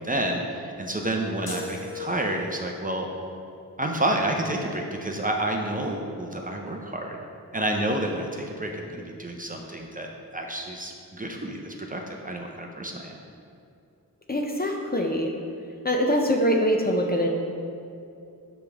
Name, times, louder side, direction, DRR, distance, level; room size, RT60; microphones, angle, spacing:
voice 1, 0.0-3.1 3.8-7.2 7.5-13.2, right 1 dB, 20° right, 1 dB, 0.6 m, -29 dB
sound 1, 1.5-2.8, left 3 dB, 70° left, 0.9 m, -38 dB
voice 2, 14.3-15.3 15.8-17.3, equal, 25° left, 1 dB, 0.5 m, -23 dB
6.0 x 5.1 x 3.5 m, 2.5 s
wide cardioid pair, 70°, 38 cm